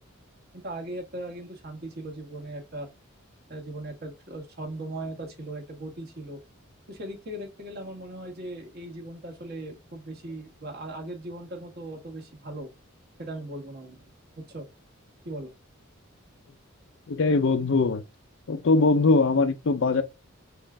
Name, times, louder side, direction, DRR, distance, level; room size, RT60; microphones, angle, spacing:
voice 1, 0.5-2.9 3.5-6.4 6.9-12.7 13.2-14.0 14.4-14.7 15.2-15.5, right 1 dB, 50° right, 1.4 m, -38 dB
voice 2, 17.1-18.0 18.5-20.0, left 3 dB, 65° left, 0.5 m, -21 dB
4.3 x 2.5 x 3.2 m
head